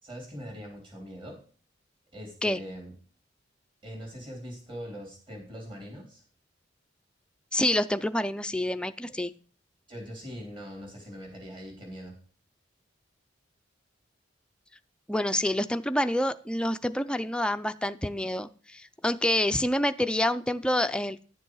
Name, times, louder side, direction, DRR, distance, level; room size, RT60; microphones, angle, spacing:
voice 1, 0.0-1.4 2.1-2.9 3.8-6.2 9.9-12.1, equal, 30° right, 0 dB, 3.8 m, -42 dB
voice 2, 7.5-9.3 15.1-21.2, left 1 dB, 5° left, 10 dB, 0.4 m, -27 dB
11.0 x 7.1 x 4.7 m, 0.40 s
head